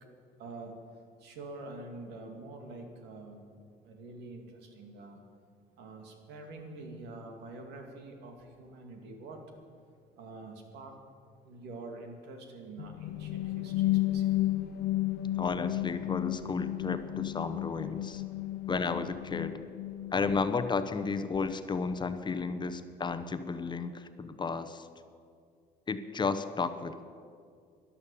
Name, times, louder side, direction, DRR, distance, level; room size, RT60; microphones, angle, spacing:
voice 1, 0.4-0.7 1.2-3.4 3.8-5.2 5.8-9.4 10.2-10.9 11.4-14.7 22.8-22.9, right 2 dB, 85° right, 4 dB, 2.4 m, -46 dB
sound 1, 12.8-20.6, left 15 dB, 75° left, 0.6 m, -33 dB
voice 2, 15.4-18.2 18.7-19.6 20.1-24.8 25.9-27.0, left 4 dB, 25° left, 10 dB, 0.9 m, -33 dB
12.5 x 11.0 x 8.5 m, 2.3 s
cardioid pair, 110°, 17 cm